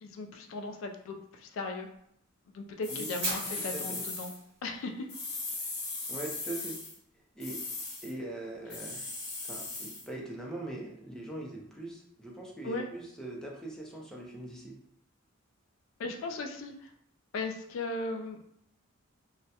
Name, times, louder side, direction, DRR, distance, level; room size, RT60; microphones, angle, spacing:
voice 1, 0.0-1.9 2.5-4.3 4.6-5.1 12.6-12.9 16.0-16.9 17.3-18.4, left 3 dB, 75° left, 5 dB, 0.3 m, -37 dB
sound 1, 2.8-4.4 5.1-7.0 7.4-8.1 8.7-10.1, left 3 dB, 55° left, 0.7 m, -38 dB
Fire, 3.2-5.3, right 2 dB, 60° right, 1.0 m, -38 dB
voice 2, 3.7-4.0 6.1-6.8 7.4-7.6 8.0-9.0 9.4-14.8, right 2 dB, 5° left, -3 dB, 0.4 m, -41 dB
2.2 x 2.0 x 2.7 m, 0.73 s
head